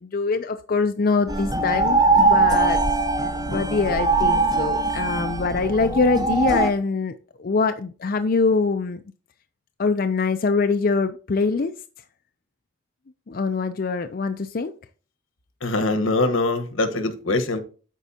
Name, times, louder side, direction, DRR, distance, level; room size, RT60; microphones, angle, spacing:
voice 1, 0.0-2.8 3.5-7.1 7.4-9.0 9.8-11.7 13.3-14.7, left 4 dB, 45° left, 0.4 m, -23 dB
sound 1, 1.3-6.7, right 3 dB, 20° right, 0.7 m, -21 dB
voice 2, 15.6-17.6, left 2 dB, 85° left, 1.2 m, -23 dB
13.0 x 4.5 x 2.8 m
head